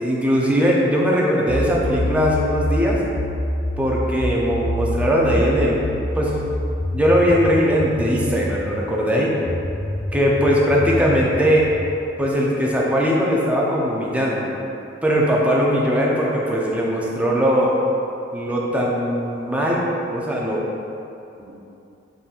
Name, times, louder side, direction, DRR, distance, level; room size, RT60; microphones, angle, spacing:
voice 1, 0.0-3.0 3.8-5.8 6.1-6.4 6.9-9.3 10.1-11.7 12.2-14.5 15.0-17.7 18.3-20.6 21.4-21.5, equal, 5° right, -4 dB, 0.5 m, -20 dB
sound 1, 1.5-8.8 9.4-11.9, left 1 dB, 55° left, 0.7 m, -27 dB
4.1 x 3.8 x 2.4 m, 2.7 s
head